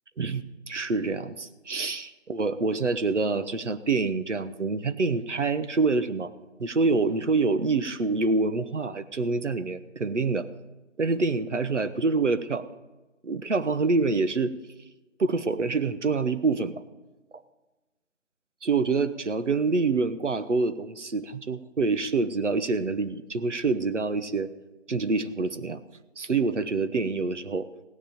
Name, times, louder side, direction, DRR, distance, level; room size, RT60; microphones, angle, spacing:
voice 1, 0.2-6.3 6.6-10.5 11.0-12.7 13.2-14.5 15.2-16.8 18.6-24.5 24.9-25.8 26.2-27.7, right 3 dB, 65° right, 11 dB, 1.1 m, -26 dB
17.0 x 9.9 x 5.2 m, 1.1 s
figure-of-eight pair, 170°, 38 cm